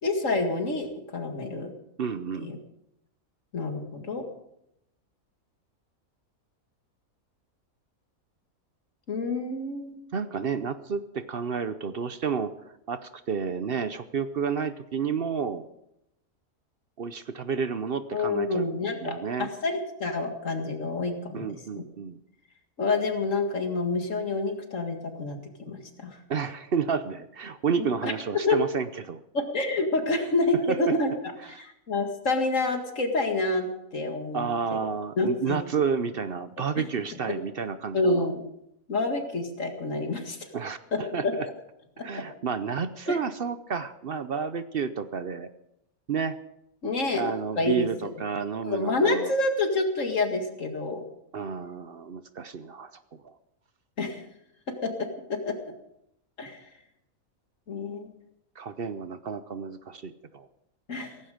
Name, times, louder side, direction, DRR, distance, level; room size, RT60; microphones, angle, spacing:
voice 1, 0.0-1.7 2.4-2.6 3.5-4.2 9.1-10.0 18.1-21.5 21.8-21.9 22.8-26.2 28.0-28.1 28.5-28.6 29.3-31.1 31.5-34.5 35.2-35.6 36.6-36.7 37.9-38.4 38.9-40.5 40.9-41.3 42.0-42.2 43.1-43.2 46.8-47.9 48.6-51.0 54.0-54.2 54.8-54.9 55.5-55.6 56.4-56.6 57.7-58.1 60.9-61.2, left 2 dB, 60° left, 5 dB, 2.4 m, -28 dB
voice 2, 2.0-2.5 10.1-12.5 12.9-15.7 17.0-18.7 19.0-19.5 21.3-22.2 26.3-29.2 30.7-30.9 31.5-31.6 34.3-38.3 40.5-41.5 42.0-45.5 46.1-46.4 47.1-49.3 51.3-53.3 58.6-60.5, right 6 dB, 50° right, 12 dB, 0.8 m, -31 dB
17.0 x 15.5 x 5.1 m, 0.81 s
omnidirectional pair, 1.5 m